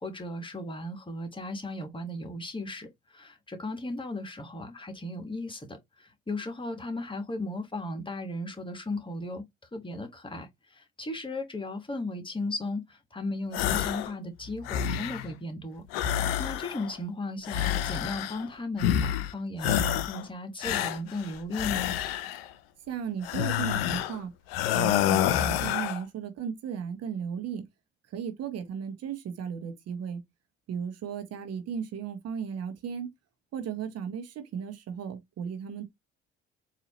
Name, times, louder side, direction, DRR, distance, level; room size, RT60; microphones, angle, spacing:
voice 1, 0.0-9.4 9.7-15.8 16.1-21.9, left 2 dB, 15° left, 1.4 m, -36 dB
sound 1, 13.5-14.1 14.5-15.3 15.9-17.0 17.4-18.5 18.8-19.3 19.6-20.2 20.6-22.5 23.2-24.2 24.5-26.0, left 11 dB, 85° left, 0.5 m, -28 dB
voice 2, 22.9-24.3 24.7-27.6 28.1-30.2 30.7-33.1 33.5-35.9, right 7 dB, 55° right, 1.1 m, -35 dB
4.1 x 2.7 x 2.9 m
hypercardioid pair, 55°, 29 cm